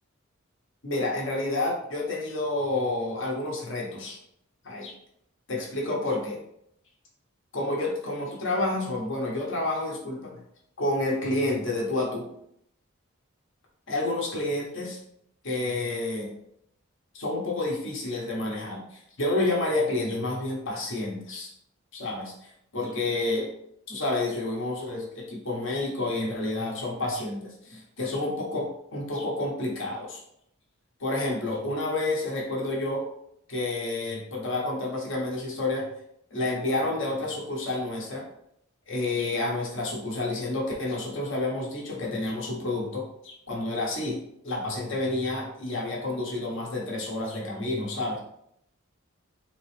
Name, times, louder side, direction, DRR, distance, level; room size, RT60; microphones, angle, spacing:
voice 1, 0.8-4.2 4.6-4.9 5.5-6.4 7.5-10.3 10.8-12.3 13.9-15.0 15.4-16.3 17.1-21.5 21.9-23.5 23.9-30.2 31.0-33.0 33.5-35.9 36.3-38.2 38.9-44.2 44.4-48.2, left 2 dB, 60° left, -3 dB, 1.1 m, -29 dB
3.9 x 2.9 x 3.3 m, 0.74 s
head